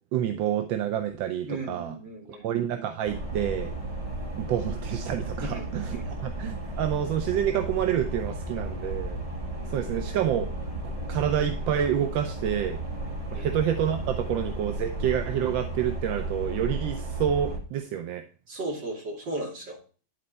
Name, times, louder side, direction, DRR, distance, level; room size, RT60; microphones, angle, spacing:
voice 1, 0.1-2.0 2.4-3.7 4.4-9.2 9.7-10.5 11.1-12.8 13.3-18.2, right 10 dB, 80° right, 7 dB, 1.4 m, -28 dB
voice 2, 1.5-2.5 5.4-6.0 13.3-13.5 18.5-19.8, right 2 dB, 65° right, -1 dB, 3.1 m, -35 dB
sound 1, 3.0-17.6, right 1 dB, 20° right, 1.9 m, -34 dB
11.0 x 4.4 x 4.0 m, 0.37 s
omnidirectional pair, 2.1 m